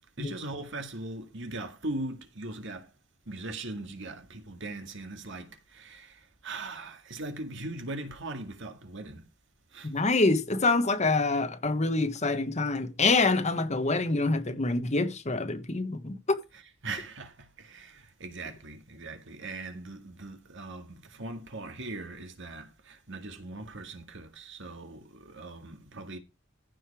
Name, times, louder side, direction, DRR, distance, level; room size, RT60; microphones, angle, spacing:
voice 1, 0.2-2.9 3.3-9.2 9.7-9.9 16.8-26.2, right 2 dB, 65° right, 2.0 m, -40 dB
voice 2, 9.8-16.4, left 3 dB, 35° left, 1.2 m, -26 dB
15.0 x 5.5 x 4.9 m
head